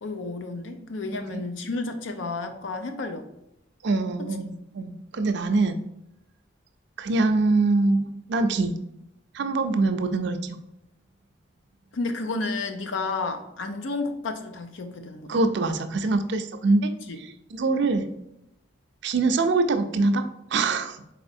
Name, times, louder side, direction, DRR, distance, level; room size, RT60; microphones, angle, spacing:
voice 1, 0.0-3.3 4.2-4.3 11.9-15.4 17.1-17.2, left 3 dB, 85° left, 7 dB, 0.6 m, -31 dB
voice 2, 1.1-1.4 3.8-5.8 7.0-8.7 9.3-10.6 15.3-16.9 17.2-18.1 19.0-21.0, right 3 dB, 65° right, 8 dB, 0.4 m, -24 dB
4.1 x 4.1 x 2.6 m, 0.83 s
head